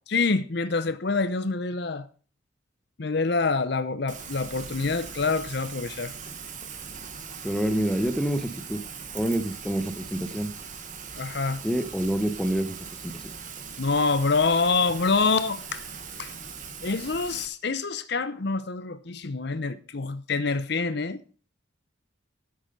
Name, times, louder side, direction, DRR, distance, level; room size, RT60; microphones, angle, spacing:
voice 1, 0.1-2.1 3.0-6.1 11.2-11.6 13.8-15.9 16.2-16.3 16.8-21.2, left 4 dB, 55° left, 0.7 m, -26 dB
Rain, 4.1-17.5, right 6 dB, 40° right, 1.4 m, -40 dB
voice 2, 7.4-8.8 9.1-10.5 11.6-12.8 13.0-13.2, right 1 dB, 5° left, 0.9 m, -27 dB
10.5 x 7.8 x 5.3 m
head